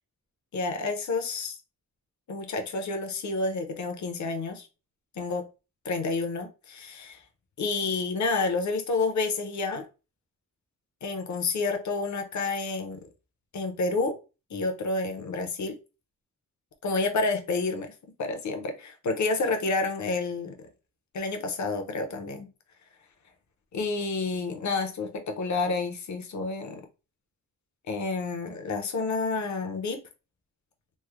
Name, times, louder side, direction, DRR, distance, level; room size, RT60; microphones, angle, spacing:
voice 1, 0.5-1.6 2.3-4.7 5.2-5.5 5.8-7.2 7.6-9.8 11.0-13.0 13.5-14.2 14.5-15.8 16.8-17.9 18.2-20.5 21.1-22.5 23.7-26.8 27.9-30.0, left 3 dB, 55° left, 0.6 m, -29 dB
3.2 x 2.0 x 3.4 m
wide cardioid pair, 175°, 34 cm